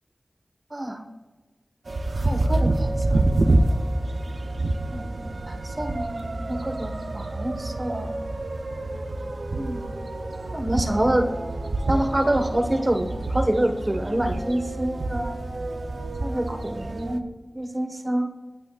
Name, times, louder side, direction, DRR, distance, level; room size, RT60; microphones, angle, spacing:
voice 1, 0.7-1.0 2.2-3.2 4.9-5.1 5.5-8.1 9.5-9.8 10.5-11.3 11.9-15.4 16.2-17.2 17.5-18.3, right 1 dB, 35° right, 5 dB, 1.5 m, -26 dB
sound 1, 1.9-17.2, right 2 dB, 75° right, 0.8 m, -27 dB
26.5 x 8.8 x 2.5 m, 1.3 s
wide cardioid pair, 70°, 0 cm